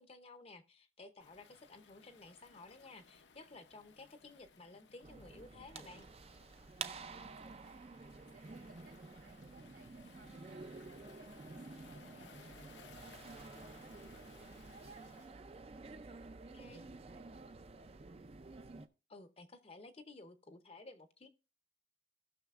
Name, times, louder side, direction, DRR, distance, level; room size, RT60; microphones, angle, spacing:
voice 1, 0.0-6.1 16.5-16.9 19.1-21.3, left 3 dB, 35° left, 0.7 m, -55 dB
Waves surf, 1.2-15.4, left 5 dB, 80° left, 0.7 m, -62 dB
sound 1, 5.0-18.9, right 4 dB, 35° right, 0.4 m, -51 dB
voice 2, 7.0-17.6, right 3 dB, 65° right, 2.3 m, -64 dB
17.5 x 6.1 x 2.4 m
head